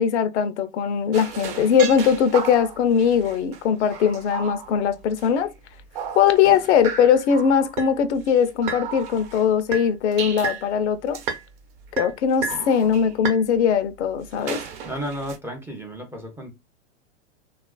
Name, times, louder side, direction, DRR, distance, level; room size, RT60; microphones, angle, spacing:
voice 1, 0.0-5.5 6.2-11.2 12.0-14.6, left 7 dB, 70° left, 0.6 m, -20 dB
sound 1, 1.1-5.5 5.8-9.4 9.7-10.7 11.1-11.4 11.8-13.4 14.2-15.4, right 6 dB, 45° right, 0.9 m, -33 dB
voice 2, 14.9-16.5, equal, 5° right, 0.5 m, -33 dB
2.9 x 2.4 x 2.3 m
hypercardioid pair, 120°, 36 cm